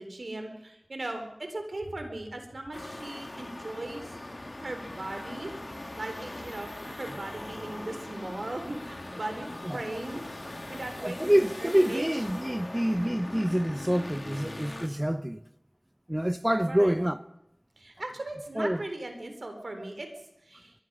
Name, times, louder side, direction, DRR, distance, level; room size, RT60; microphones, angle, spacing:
voice 1, 0.0-4.1 4.6-5.5 5.9-9.5 9.7-10.2 10.7-12.1 16.7-16.9 17.8-20.1 20.5-20.7, right 2 dB, 90° right, 3.6 m, -38 dB
sound 1, 2.7-14.9, left 1 dB, 55° left, 2.4 m, -41 dB
voice 2, 11.0-15.4 16.1-17.2 18.5-18.8, equal, 15° right, 0.7 m, -27 dB
23.0 x 21.5 x 6.2 m
wide cardioid pair, 45°, 0 cm